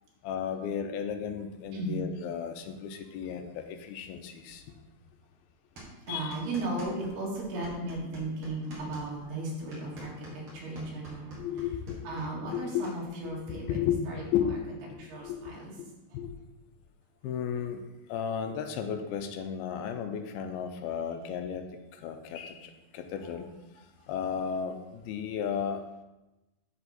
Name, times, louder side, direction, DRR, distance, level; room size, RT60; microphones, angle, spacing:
voice 1, 0.2-4.7 6.1-6.3 11.4-12.8 13.2-15.5 16.1-16.4 17.2-25.8, left 8 dB, 85° left, 7 dB, 2.5 m, -34 dB
sound 1, 5.8-7.1 7.4-13.0, right 1 dB, 40° right, 2.3 m, -47 dB
voice 2, 6.1-11.5 12.1-13.8 14.1-14.2 15.0-15.7, right 2 dB, 85° right, -4 dB, 3.9 m, -36 dB
12.5 x 4.3 x 4.1 m, 1.0 s
omnidirectional pair, 4.5 m